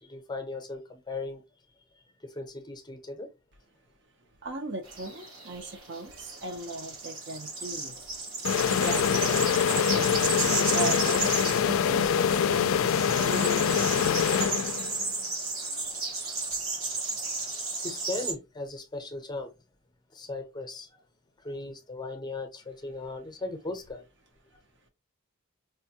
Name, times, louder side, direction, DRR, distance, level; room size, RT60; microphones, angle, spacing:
voice 1, 0.0-1.4 2.2-3.3 16.9-17.1 17.4-19.5 20.1-21.0 21.4-24.0, left 2 dB, 20° left, 0.6 m, -38 dB
voice 2, 4.4-8.0 8.7-9.4 9.7-10.3 10.7-12.8 13.2-14.6, right 3 dB, 55° right, 0.6 m, -38 dB
sound 1, 4.9-18.3, right 3 dB, 70° right, 1.1 m, -33 dB
sound 2, 8.4-15.1, left 7 dB, 65° left, 0.3 m, -25 dB
4.8 x 2.2 x 2.7 m
head